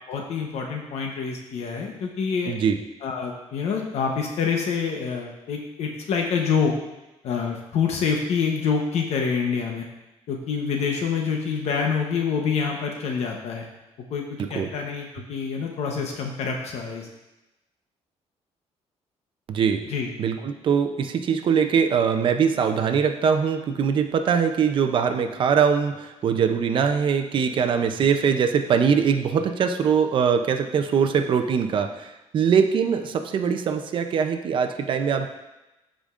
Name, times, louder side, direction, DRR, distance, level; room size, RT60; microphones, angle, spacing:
voice 1, 0.1-2.5 3.0-6.7 7.2-9.9 10.3-13.7 14.1-17.1 19.9-20.1, left 6 dB, 65° left, 1 dB, 1.0 m, -26 dB
voice 2, 2.5-2.8 14.4-14.7 19.5-19.8 20.2-35.3, right 7 dB, 45° right, 6 dB, 0.6 m, -22 dB
13.5 x 5.1 x 2.5 m, 1.0 s
cardioid pair, 165°, 12 cm